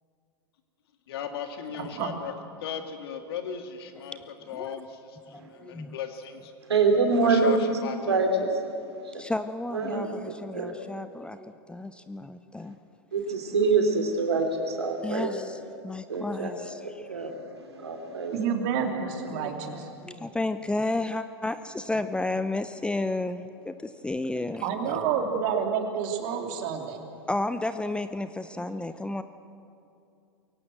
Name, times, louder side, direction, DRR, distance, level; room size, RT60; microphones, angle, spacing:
voice 1, 1.1-2.3 2.6-4.2 4.5-6.5 7.2-8.4, left 7 dB, 65° left, 6 dB, 2.3 m, -37 dB
voice 2, 5.3-6.0 9.1-12.8 15.0-17.1 19.3-19.5 20.0-24.7 27.3-29.2, left 2 dB, 5° left, 11 dB, 0.7 m, -32 dB
voice 3, 6.7-7.5 8.1-8.5 9.7-10.1 10.5-10.7 13.1-15.3 16.1-16.5 17.1-17.3 17.8-18.3, right 4 dB, 80° right, 4 dB, 3.2 m, -24 dB
voice 4, 18.3-19.9 24.6-27.0, right 7 dB, 55° right, 3 dB, 3.0 m, -29 dB
22.5 x 17.5 x 7.8 m, 2.6 s
hypercardioid pair, 95°, 13 cm